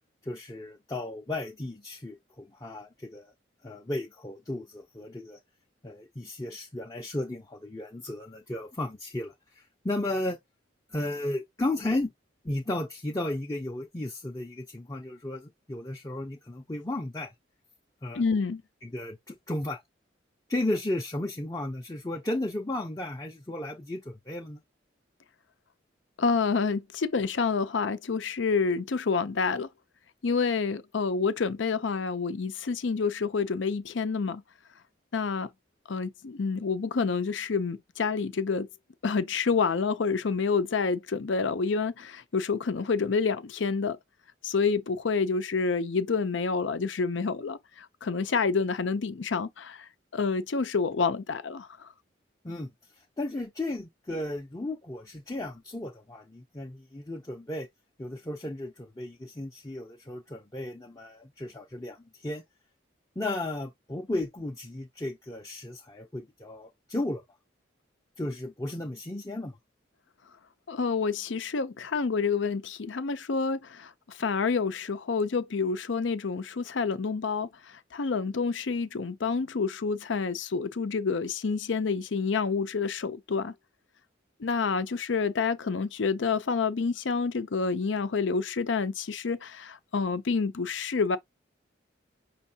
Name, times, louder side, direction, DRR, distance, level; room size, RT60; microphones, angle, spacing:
voice 1, 0.2-3.3 3.6-5.4 5.8-10.4 10.9-12.1 12.4-17.3 18.0-18.2 18.8-19.8 20.5-24.6 52.4-57.7 58.0-62.4 63.2-67.2 68.2-69.6, left 1 dB, 20° left, 0.6 m, -34 dB
voice 2, 18.1-18.6 26.2-29.7 30.2-34.4 35.1-35.5 35.9-38.7 39.0-44.0 44.4-51.9 70.7-83.5 84.4-91.2, left 5 dB, 75° left, 0.6 m, -28 dB
5.5 x 3.1 x 2.8 m
head